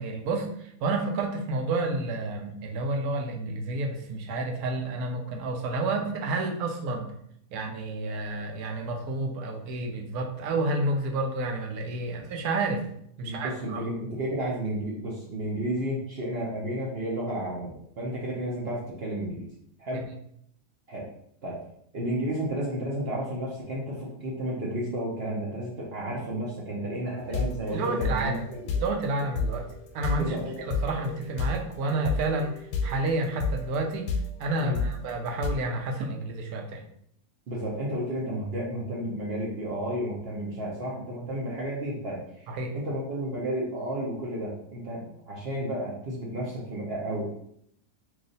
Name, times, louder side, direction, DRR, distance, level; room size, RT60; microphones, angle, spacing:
voice 1, 0.0-7.1 7.5-12.9 13.2-13.8 19.9-20.0 27.7-28.4 28.8-29.7 29.9-30.4 30.7-34.1 34.4-36.8 42.5-42.7, right 2 dB, 75° right, 2 dB, 1.1 m, -30 dB
voice 2, 13.2-19.5 19.8-20.1 20.9-21.0 21.4-21.6 21.9-28.5 28.8-28.9 30.1-30.5 34.6-34.8 37.5-42.5 42.7-47.3, right 1 dB, 55° right, -4 dB, 0.7 m, -32 dB
sound 1, 27.2-35.5, left 3 dB, 85° left, 1.1 m, -32 dB
3.1 x 2.4 x 3.9 m, 0.70 s
omnidirectional pair, 1.7 m